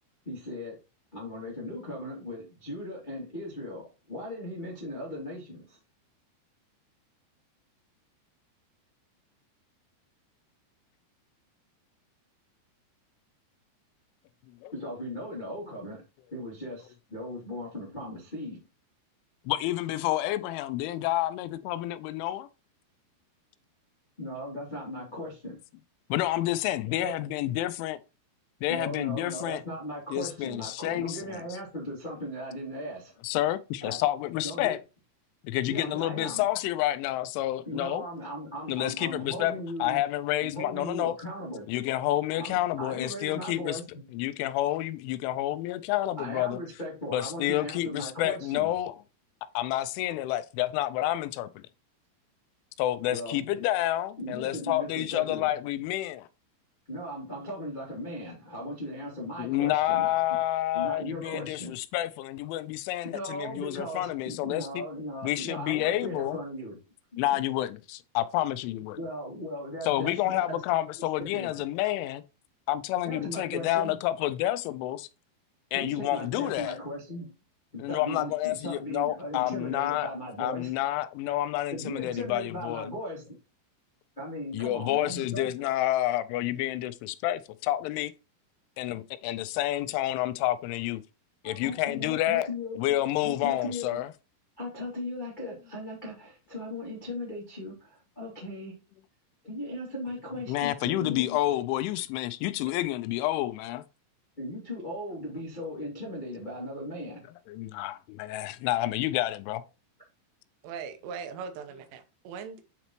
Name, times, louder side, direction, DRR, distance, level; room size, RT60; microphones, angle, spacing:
voice 1, 0.2-0.8 1.1-5.8 14.7-16.0 16.3-18.6 24.2-25.6 27.0-27.1 28.7-33.2 33.8-34.0 34.4-34.8 35.7-36.4 37.6-40.0 40.4-41.7 42.3-44.0 46.2-48.7 53.1-53.4 54.2-55.5 56.9-60.2 60.7-61.8 63.1-66.8 68.9-70.6 71.2-71.5 73.0-73.9 75.7-77.3 77.7-80.7 81.7-83.3 84.2-85.5 91.4-92.8 93.2-94.0 94.6-98.8 99.4-101.4 104.4-107.3, left 1 dB, 60° left, 0.5 m, -38 dB
voice 2, 19.5-22.5 26.1-28.0 28.6-29.6 30.1-31.4 33.2-34.8 35.4-38.0 38.7-39.5 39.8-41.2 41.7-43.8 44.1-46.6 47.1-49.0 49.5-51.6 52.8-56.3 59.4-64.8 65.2-66.4 67.2-69.0 69.8-72.2 72.7-75.1 75.7-76.8 77.8-80.1 80.4-82.9 84.5-88.1 88.8-91.0 91.4-92.5 92.8-94.1 100.5-103.8 107.5-109.6, left 14 dB, 85° left, 3.0 m, -29 dB
voice 3, 110.6-112.6, right 6 dB, 90° right, 3.4 m, -40 dB
9.3 x 4.1 x 3.0 m
omnidirectional pair, 5.4 m